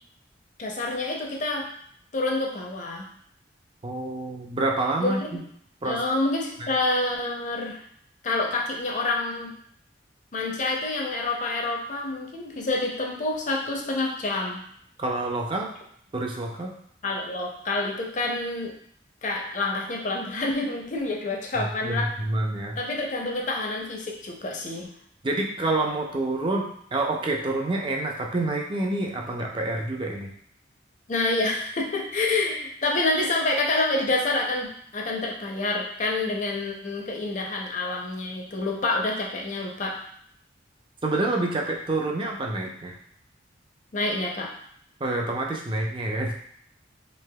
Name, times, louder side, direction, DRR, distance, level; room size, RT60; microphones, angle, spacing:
voice 1, 0.6-1.7 2.1-3.1 5.0-5.4 5.8-7.8 8.2-9.5 10.3-14.6 17.0-18.7 19.2-22.1 22.8-24.9 31.1-40.0 43.9-44.5, left 2 dB, 45° left, 0 dB, 0.5 m, -27 dB
voice 2, 3.8-5.4 5.8-6.0 6.6-6.7 15.0-15.7 16.1-16.7 21.5-22.8 25.2-30.3 41.0-43.0 45.0-46.3, right 2 dB, 25° right, 1 dB, 0.4 m, -27 dB
3.3 x 2.8 x 2.2 m, 0.66 s
head